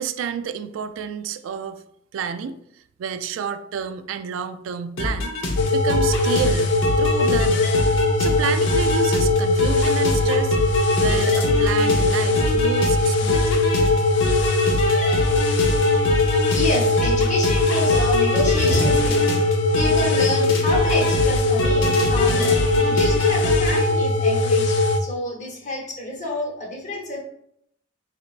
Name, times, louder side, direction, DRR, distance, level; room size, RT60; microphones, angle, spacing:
voice 1, 0.0-1.8 2.1-2.6 3.0-5.4 5.7-7.7 8.2-10.6 11.0-13.6, right 7 dB, 90° right, 0.3 m, -29 dB
sound 1, 5.0-23.8, left 1 dB, 90° left, 0.7 m, -26 dB
sound 2, 5.6-25.0, left 2 dB, 65° left, 0.4 m, -20 dB
voice 2, 16.5-19.3 19.7-22.5 22.9-27.2, left 1 dB, 40° left, 0.9 m, -28 dB
4.3 x 3.2 x 2.4 m
head